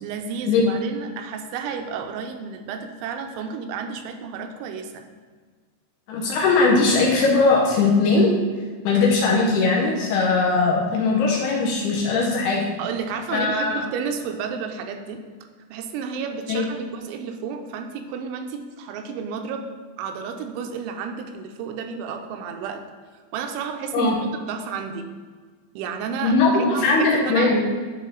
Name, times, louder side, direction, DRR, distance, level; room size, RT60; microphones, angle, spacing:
voice 1, 0.0-5.1 12.8-15.2 15.7-19.7 20.0-22.8 23.3-25.1 25.7-26.4 26.7-27.5, right 6 dB, 85° right, 5 dB, 3.0 m, -31 dB
voice 2, 6.1-8.3 8.8-12.6 13.3-13.8 16.5-16.6 23.9-24.2 26.2-27.6, left 3 dB, 75° left, -3 dB, 2.5 m, -19 dB
10.5 x 3.8 x 3.8 m, 1.5 s
omnidirectional pair, 5.4 m